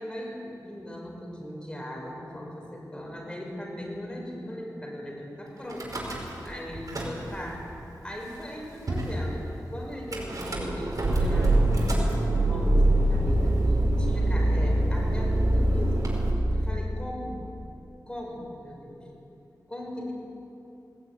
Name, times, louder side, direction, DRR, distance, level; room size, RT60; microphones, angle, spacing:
voice 1, 0.0-7.6 8.0-13.5 14.0-16.0 16.5-17.4 18.1-19.1 19.7-20.1, equal, 10° left, -1 dB, 6.1 m, -38 dB
Car / Engine starting / Idling, 5.7-6.5 6.8-7.5 8.2-8.3 8.5-8.6 8.9-9.2 10.1-16.3, right 1 dB, 55° right, 5.2 m, -24 dB
20.0 x 19.0 x 9.6 m, 2.8 s
wide cardioid pair, 100°, 7 cm